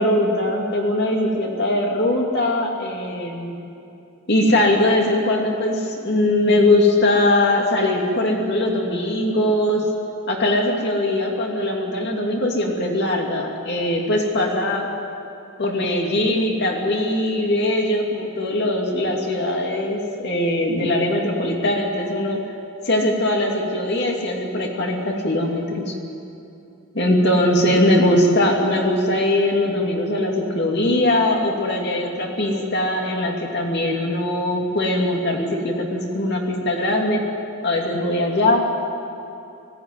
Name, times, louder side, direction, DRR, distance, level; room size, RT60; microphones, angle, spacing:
voice 1, 0.0-3.5 4.3-9.9 10.3-14.9 15.6-22.4 22.8-26.0 26.9-37.2 37.6-38.6, left 1 dB, 50° left, 0 dB, 2.6 m, -21 dB
19.0 x 16.5 x 9.4 m, 2.7 s
head